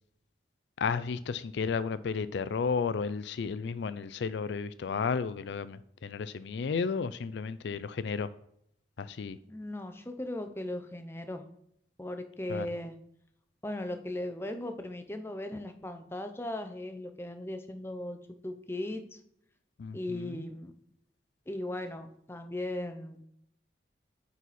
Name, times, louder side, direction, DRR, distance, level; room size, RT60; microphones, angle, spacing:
voice 1, 0.8-8.3 9.0-9.4 12.5-12.7 19.8-20.4, left 5 dB, 75° left, 0.4 m, -33 dB
voice 2, 9.5-11.4 12.0-12.9 13.6-18.2 18.4-19.2 19.9-20.7 21.5-23.2, left 1 dB, 15° left, 0.6 m, -37 dB
9.2 x 4.1 x 4.2 m
head